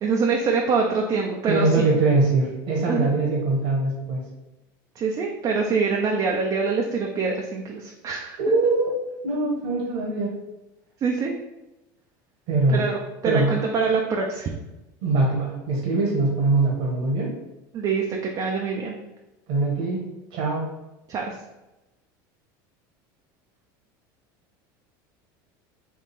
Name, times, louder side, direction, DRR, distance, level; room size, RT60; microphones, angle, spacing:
voice 1, 0.0-1.9 2.9-3.1 5.0-8.4 11.0-11.3 12.7-14.5 17.7-18.9 21.1-21.3, right 4 dB, 35° right, 0 dB, 0.5 m, -25 dB
voice 2, 1.5-4.2 8.4-8.9 9.2-10.3 12.5-12.8 13.2-13.5 15.0-17.3 19.5-20.0 20.3-20.6, right 3 dB, 65° right, -3 dB, 1.3 m, -22 dB
3.6 x 2.4 x 4.2 m, 0.98 s
supercardioid pair, 115°, 11 cm